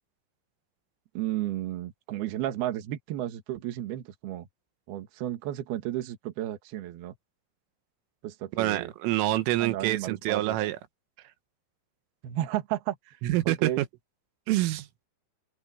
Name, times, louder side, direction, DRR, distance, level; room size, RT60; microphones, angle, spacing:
voice 1, 1.1-4.5 4.9-7.1 8.2-8.9 9.6-10.6 12.2-13.2 13.5-13.8, right 13 dB, 60° right, 3.2 m, -33 dB
voice 2, 8.6-10.8 13.2-13.9 14.5-14.9, right 16 dB, 90° right, 3.8 m, -26 dB
omnidirectional pair, 5.7 m